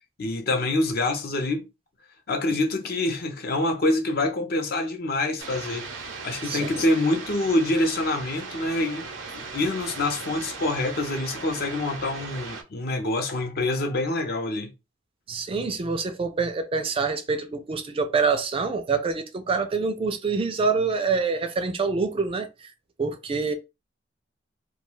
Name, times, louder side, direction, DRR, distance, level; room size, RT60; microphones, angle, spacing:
voice 1, 0.2-1.7 2.3-5.9 6.2-14.7, left 2 dB, 50° left, 0.6 m, -26 dB
sound 1, 5.4-12.6, right 4 dB, 75° right, 0.6 m, -38 dB
voice 2, 6.4-6.8 15.3-22.5 23.0-23.5, right 4 dB, 30° right, 0.3 m, -26 dB
2.3 x 2.2 x 3.0 m
head